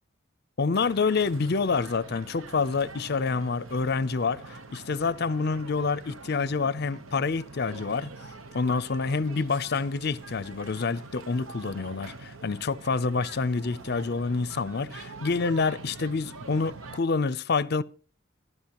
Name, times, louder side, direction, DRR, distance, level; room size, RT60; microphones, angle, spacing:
voice 1, 0.6-8.1 8.5-17.8, left 4 dB, 50° left, 0.5 m, -27 dB
sound 1, 0.7-17.0, right 3 dB, 75° right, 1.0 m, -45 dB
26.0 x 11.0 x 3.0 m
head